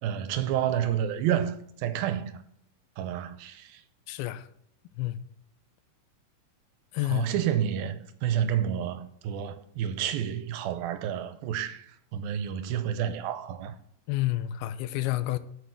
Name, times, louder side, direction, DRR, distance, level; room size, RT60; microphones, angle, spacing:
voice 1, 0.0-2.4 3.0-3.8 7.1-13.8, right 10 dB, 80° right, 2.5 m, -30 dB
voice 2, 4.1-4.5 5.0-5.2 6.9-7.3 14.1-15.4, left 16 dB, 85° left, 2.5 m, -29 dB
8.9 x 7.0 x 6.4 m
omnidirectional pair, 4.4 m